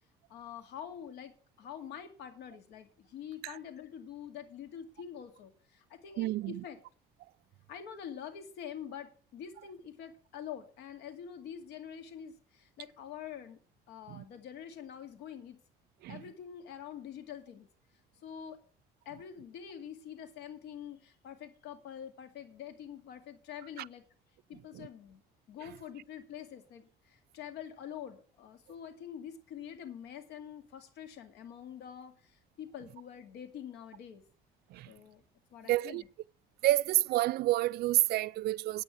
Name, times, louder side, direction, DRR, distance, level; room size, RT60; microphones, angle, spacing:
voice 1, 0.3-1.3 1.6-6.8 7.7-13.6 13.9-15.6 16.1-17.7 18.2-18.6 19.1-24.0 24.5-25.2 25.5-34.2 34.9-35.2 35.5-36.1, left 9 dB, 85° left, 2.2 m, -46 dB
voice 2, 6.2-6.6 14.1-14.2 16.0-16.2 24.7-24.9 34.7-34.9 35.7-36.0 36.6-38.8, right 16 dB, 70° right, 0.4 m, -29 dB
8.9 x 8.9 x 7.4 m
cardioid pair, 110°, 17 cm